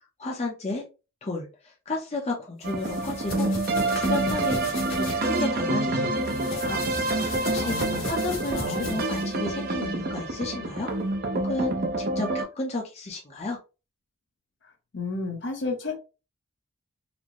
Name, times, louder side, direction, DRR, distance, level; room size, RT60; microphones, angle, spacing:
voice 1, 0.2-0.8 1.2-7.8 8.1-10.9 11.3-13.6, left 2 dB, 30° left, 0 dB, 0.6 m, -33 dB
sound 1, 2.6-12.4, right 2 dB, 45° right, 0.6 m, -27 dB
sound 2, 2.7-5.2 6.2-9.3, left 3 dB, 85° left, 1.3 m, -37 dB
voice 2, 7.6-9.0 14.9-16.0, left 3 dB, 60° left, 3 dB, 0.8 m, -33 dB
4.2 x 2.0 x 2.9 m, 0.30 s
head